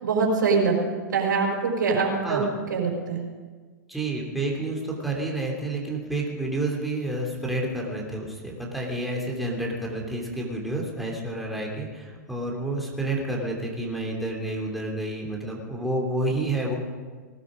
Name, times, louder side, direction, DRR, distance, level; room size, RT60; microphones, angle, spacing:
voice 1, 0.0-0.8 1.1-2.4 2.7-3.2, right 4 dB, 85° right, -1 dB, 4.8 m, -23 dB
voice 2, 3.9-16.8, right 2 dB, ahead, -2 dB, 3.1 m, -29 dB
19.5 x 12.5 x 5.1 m, 1.5 s
hypercardioid pair, 130°, 10 cm